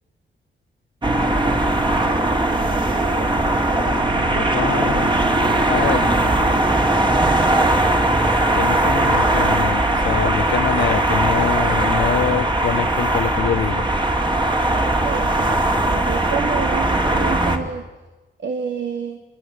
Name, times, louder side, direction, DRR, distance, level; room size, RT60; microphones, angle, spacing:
sound 1, 1.0-17.6, right 1 dB, 25° right, 2.8 m, -19 dB
voice 1, 3.7-4.0 4.3-5.1 5.7-6.1 8.1-13.9, left 9 dB, 70° left, 11 dB, 0.8 m, -25 dB
voice 2, 15.0-17.9 18.4-19.2, right 6 dB, 70° right, 6 dB, 2.1 m, -29 dB
28.0 x 22.5 x 8.0 m, 1.2 s
wide cardioid pair, 135°, 20 cm